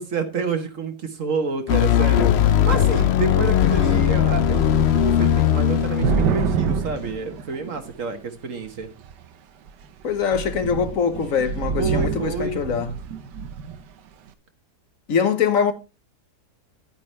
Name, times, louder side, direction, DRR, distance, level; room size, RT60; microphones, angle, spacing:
voice 1, 0.0-2.3 2.6-8.9 11.8-12.6, right 4 dB, 50° right, 1.5 m, -28 dB
sound 1, 1.7-7.0, left 10 dB, 70° left, 0.6 m, -19 dB
Thunder / Rain, 3.6-3.7 4.0-8.1 8.8-9.3 9.7-9.8 10.1-13.8, right 6 dB, 90° right, 1.5 m, -28 dB
voice 2, 10.0-12.9 15.1-15.7, left 6 dB, 55° left, 1.3 m, -23 dB
10.5 x 9.5 x 3.2 m
omnidirectional pair, 1.8 m